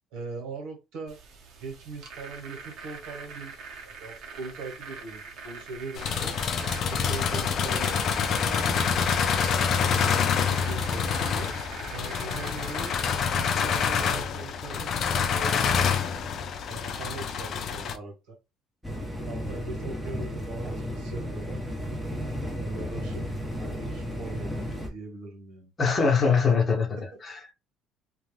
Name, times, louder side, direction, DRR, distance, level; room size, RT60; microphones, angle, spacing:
voice 1, 0.1-1.2 1.6-3.6 3.8-6.4 6.9-8.9 9.8-11.5 11.9-13.0 13.3-16.3 16.7-18.4 19.2-21.6 22.6-23.3 23.7-24.5 24.8-25.7 27.0-27.1, right 3 dB, 80° right, 1.2 m, -41 dB
sound 1, 1.1-13.6, right 5 dB, 65° right, 0.9 m, -43 dB
sound 2, 5.9-18.0, left 6 dB, 55° left, 0.4 m, -27 dB
sound 3, 18.8-24.9, equal, ahead, 0.8 m, -33 dB
voice 2, 25.8-27.5, left 5 dB, 30° left, 0.9 m, -23 dB
2.4 x 2.2 x 3.2 m
cardioid pair, 95°, 0 cm